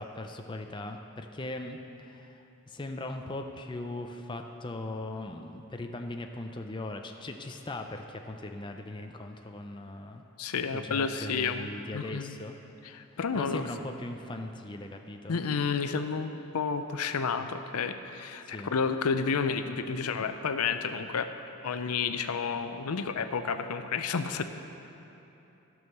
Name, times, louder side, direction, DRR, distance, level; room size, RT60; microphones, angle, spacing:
voice 1, 0.0-10.2 10.7-12.6 13.3-15.4 18.5-18.8, left 2 dB, 20° left, 4 dB, 0.4 m, -39 dB
voice 2, 10.4-12.4 12.8-13.6 15.3-21.3 21.6-24.4, left 5 dB, 85° left, 9 dB, 0.5 m, -31 dB
12.5 x 6.2 x 6.6 m, 3.0 s
head